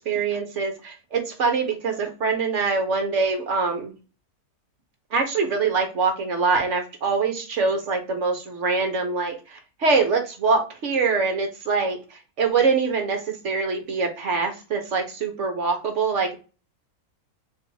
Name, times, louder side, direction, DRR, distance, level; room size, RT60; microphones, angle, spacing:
voice 1, 0.1-3.9 5.1-9.3 9.8-12.0 12.4-16.4, right 4 dB, 55° right, 3 dB, 1.1 m, -24 dB
3.4 x 2.5 x 4.5 m, 0.33 s
omnidirectional pair, 1.6 m